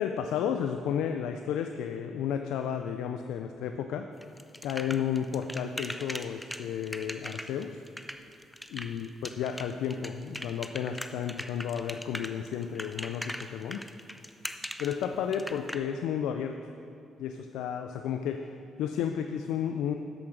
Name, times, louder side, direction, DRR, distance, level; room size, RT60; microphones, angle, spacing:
voice 1, 0.0-4.1 4.6-7.8 8.7-9.1 9.4-13.9 14.8-16.6 17.2-19.9, left 8 dB, 90° left, 6 dB, 0.3 m, -32 dB
sound 1, 4.2-15.8, left 1 dB, 5° left, 0.5 m, -39 dB
8.0 x 7.1 x 6.0 m, 2.5 s
cardioid pair, 90°, 0 cm